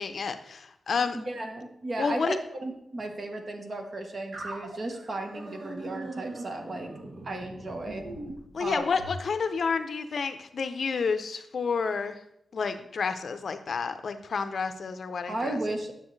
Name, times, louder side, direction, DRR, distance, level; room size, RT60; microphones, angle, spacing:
voice 1, 0.0-1.2 2.0-2.4 8.5-12.2 12.5-15.6, left 5 dB, 55° left, 9 dB, 0.6 m, -30 dB
voice 2, 1.0-6.9 7.2-8.1 8.6-8.9 15.3-15.9, right 2 dB, 40° right, 4 dB, 1.1 m, -35 dB
sound 1, 4.3-9.2, right 1 dB, 60° right, 1.3 m, -41 dB
9.5 x 7.0 x 3.2 m, 0.76 s
wide cardioid pair, 145°, 0 cm